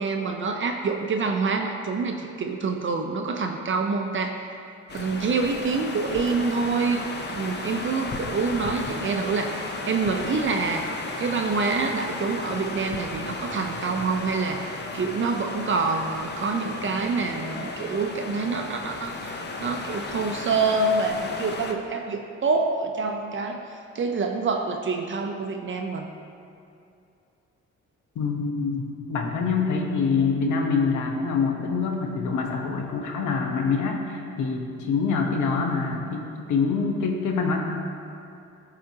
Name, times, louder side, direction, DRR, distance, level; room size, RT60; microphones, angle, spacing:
voice 1, 0.0-4.4 4.9-10.9 11.2-26.1, right 4 dB, 40° right, 3 dB, 0.6 m, -27 dB
sound 1, 4.9-21.7, left 3 dB, 35° left, 0.8 m, -34 dB
voice 2, 28.1-37.6, left 5 dB, 75° left, 2 dB, 1.0 m, -25 dB
14.5 x 4.9 x 2.8 m, 2.6 s
cardioid pair, 90°, 30 cm